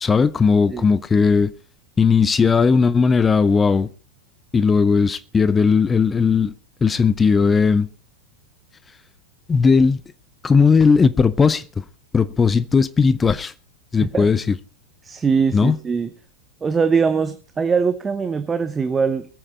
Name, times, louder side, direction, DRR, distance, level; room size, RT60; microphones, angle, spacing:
voice 1, 0.0-1.5 2.0-3.9 4.5-6.5 6.8-7.9 9.5-10.0 10.4-11.8 12.1-13.5 13.9-14.5 15.5-15.8, left 5 dB, 15° left, 0.6 m, -17 dB
voice 2, 15.0-16.1 16.6-19.3, right 5 dB, 15° right, 1.0 m, -21 dB
22.5 x 8.7 x 4.3 m
figure-of-eight pair, 90°, 0 cm